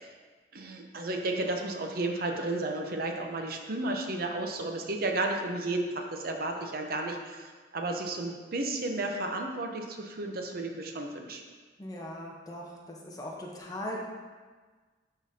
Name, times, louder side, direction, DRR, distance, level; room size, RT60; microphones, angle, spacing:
voice 1, 0.5-11.4, right 2 dB, 55° right, 3 dB, 0.7 m, -33 dB
voice 2, 11.8-14.0, equal, 20° left, -2 dB, 0.9 m, -39 dB
11.0 x 3.8 x 2.8 m, 1.4 s
head